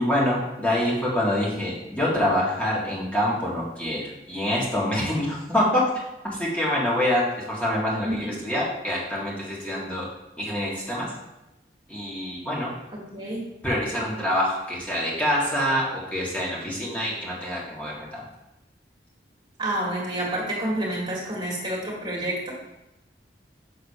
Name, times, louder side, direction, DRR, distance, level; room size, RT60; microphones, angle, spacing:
voice 1, 0.0-5.8 6.2-10.1 10.4-11.1 11.9-12.7 13.6-18.2, left 1 dB, 10° left, -5 dB, 1.8 m, -26 dB
voice 2, 8.0-8.4 13.1-13.5 19.6-22.5, right 1 dB, 25° right, -5 dB, 2.1 m, -28 dB
6.6 x 4.1 x 5.5 m, 0.94 s
head